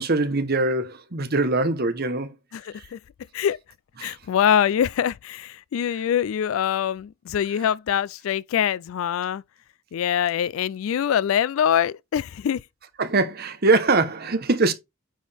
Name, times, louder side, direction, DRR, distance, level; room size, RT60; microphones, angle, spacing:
voice 1, 0.0-2.3 2.7-2.8 4.0-4.1 13.0-14.7, right 3 dB, 50° right, 1.1 m, -22 dB
voice 2, 2.5-3.0 3.3-3.6 4.0-9.4 9.9-12.6, left 9 dB, 75° left, 0.3 m, -24 dB
9.2 x 4.5 x 3.4 m
head